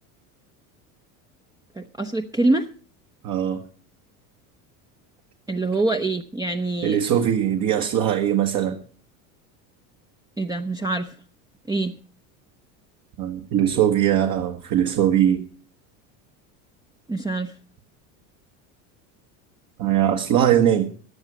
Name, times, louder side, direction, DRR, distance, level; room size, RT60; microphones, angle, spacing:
voice 1, 1.8-2.7 5.5-7.0 10.4-11.1 11.7-11.9 17.1-17.5, right 2 dB, 10° right, 0.7 m, -24 dB
voice 2, 3.2-3.6 6.8-8.8 13.2-15.5 19.8-20.9, right 10 dB, 50° right, 1.7 m, -21 dB
15.0 x 9.7 x 5.0 m
supercardioid pair, 105°, 42 cm